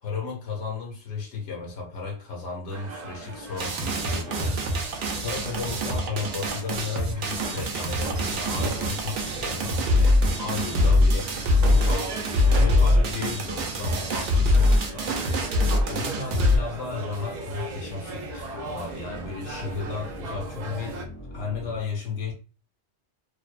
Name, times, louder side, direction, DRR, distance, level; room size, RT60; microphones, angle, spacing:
voice 1, 0.0-9.7 10.1-11.3 11.7-12.1 12.6-15.2 15.8-21.0 21.3-22.3, left 4 dB, 85° left, 1.0 m, -34 dB
sound 1, 2.7-21.1, right 3 dB, 60° right, 0.4 m, -38 dB
sound 2, 3.6-16.6, left 1 dB, 80° right, 0.9 m, -23 dB
sound 3, 8.1-21.8, left 2 dB, 65° left, 1.0 m, -43 dB
2.5 x 2.0 x 2.4 m
omnidirectional pair, 1.2 m